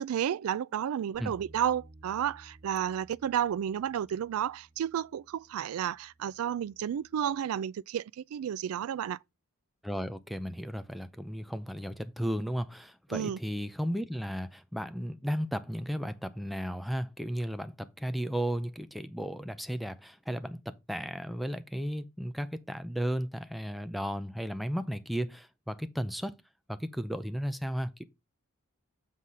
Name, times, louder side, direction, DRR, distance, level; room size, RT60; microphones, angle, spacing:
voice 1, 0.0-9.2 13.1-13.4, right 9 dB, 80° right, 0.3 m, -32 dB
Bass guitar, 1.1-7.4, right 1 dB, 45° right, 2.3 m, -57 dB
voice 2, 9.8-20.6 20.9-26.3 26.7-28.0, equal, ahead, 0.5 m, -34 dB
7.5 x 4.1 x 4.8 m
head